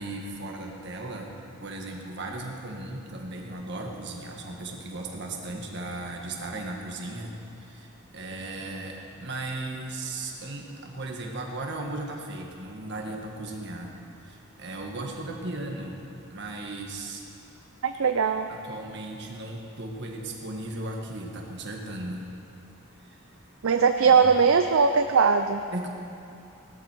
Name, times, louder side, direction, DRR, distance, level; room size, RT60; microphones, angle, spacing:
voice 1, 0.0-1.3 1.6-7.3 7.6-13.9 14.2-16.0 16.3-17.2 18.5-22.3 23.1-23.2 24.0-24.3 25.7-25.9, right 2 dB, 50° right, 1 dB, 1.7 m, -36 dB
voice 2, 17.8-18.5 23.6-25.6, right 5 dB, 70° right, 7 dB, 0.5 m, -20 dB
17.5 x 13.0 x 4.6 m, 2.7 s
head